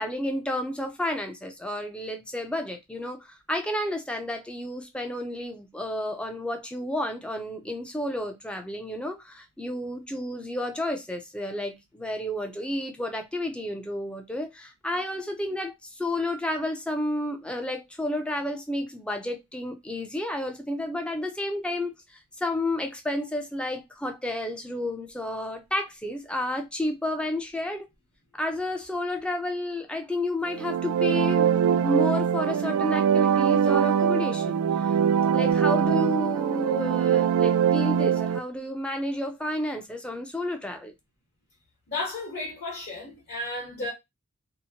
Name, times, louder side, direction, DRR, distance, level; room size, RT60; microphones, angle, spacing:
voice 1, 0.0-27.9 28.3-35.0 35.3-40.9, left 1 dB, 5° left, 0.4 m, -31 dB
sound 1, 30.5-38.4, right 8 dB, 85° right, 0.3 m, -23 dB
voice 2, 41.9-43.9, left 2 dB, 50° left, 1.0 m, -33 dB
2.8 x 2.1 x 2.8 m
head